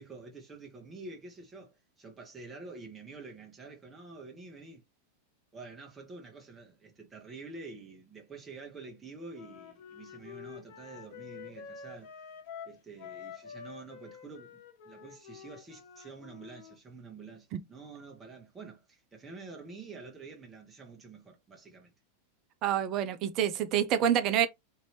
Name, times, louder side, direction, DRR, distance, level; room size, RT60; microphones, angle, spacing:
voice 1, 0.0-4.8 5.5-12.1 12.6-21.9, right 3 dB, 15° right, 1.1 m, -48 dB
Wind instrument woodwind instrument, 9.3-16.8, left 7 dB, 55° left, 0.8 m, -48 dB
voice 2, 22.6-24.5, right 9 dB, 40° right, 0.5 m, -27 dB
2.8 x 2.7 x 3.2 m
figure-of-eight pair, 90°, 0 cm